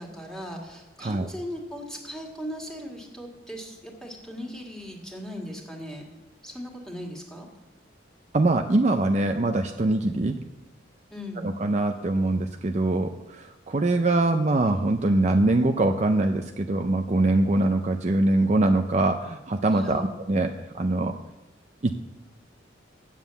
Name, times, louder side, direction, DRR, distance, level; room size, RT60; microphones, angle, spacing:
voice 1, 0.0-6.0 6.4-7.5 11.1-11.5 19.7-20.1, equal, 5° left, -1 dB, 1.9 m, -38 dB
voice 2, 8.3-10.4 11.4-21.2 21.8-21.9, right 2 dB, 35° right, 5 dB, 0.5 m, -23 dB
9.4 x 7.3 x 8.1 m, 1.0 s
head